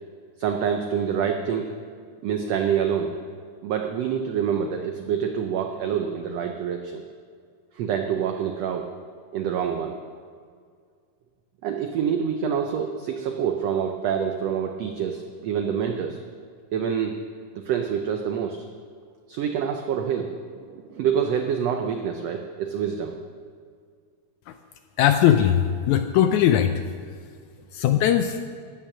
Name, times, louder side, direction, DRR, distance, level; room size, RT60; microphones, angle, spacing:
voice 1, 0.4-1.7 2.2-3.1 3.6-7.0 7.7-8.9 9.3-10.0 11.6-16.2 16.7-17.2 17.5-18.6 19.3-23.1, right 8 dB, 90° right, 4 dB, 1.4 m, -26 dB
voice 2, 25.0-26.8 27.7-28.4, left 10 dB, 80° left, 8 dB, 1.7 m, -20 dB
13.0 x 8.9 x 6.0 m, 2.1 s
omnidirectional pair, 3.8 m